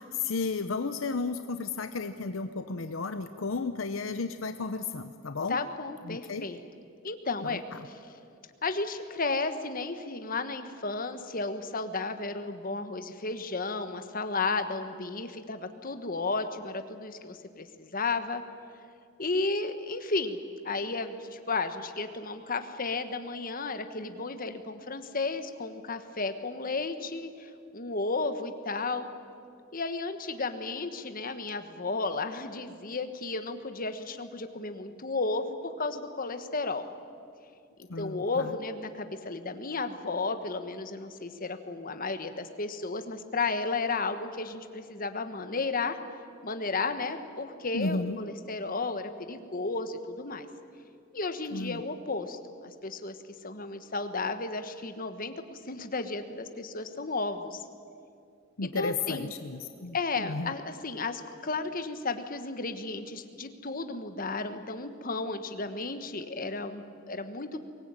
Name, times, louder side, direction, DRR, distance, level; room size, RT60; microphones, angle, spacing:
voice 1, 0.0-5.6 6.0-6.4 7.4-7.8 37.9-38.6 47.7-48.2 51.5-51.8 58.6-60.5, left 4 dB, 70° left, 9 dB, 0.8 m, -33 dB
voice 2, 5.5-6.6 7.0-7.9 8.6-18.4 19.2-20.4 20.6-29.1 29.7-36.8 38.0-46.0 46.4-50.5 51.1-53.2 53.4-57.6 58.6-59.3 59.9-67.6, left 3 dB, 45° left, 8 dB, 1.4 m, -33 dB
23.0 x 19.0 x 9.0 m, 2.4 s
head